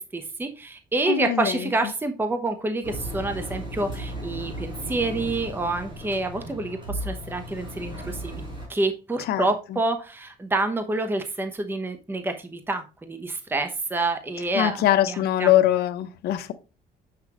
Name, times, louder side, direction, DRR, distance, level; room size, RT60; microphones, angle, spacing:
voice 1, 0.1-8.3 8.7-15.5, right 2 dB, 10° right, 0.9 m, -28 dB
voice 2, 1.1-1.7 9.2-9.8 14.5-16.5, left 12 dB, 70° left, 0.7 m, -23 dB
Engine, 2.8-8.7, equal, 30° right, 4.4 m, -35 dB
7.3 x 6.0 x 3.0 m
cardioid pair, 110°, 17 cm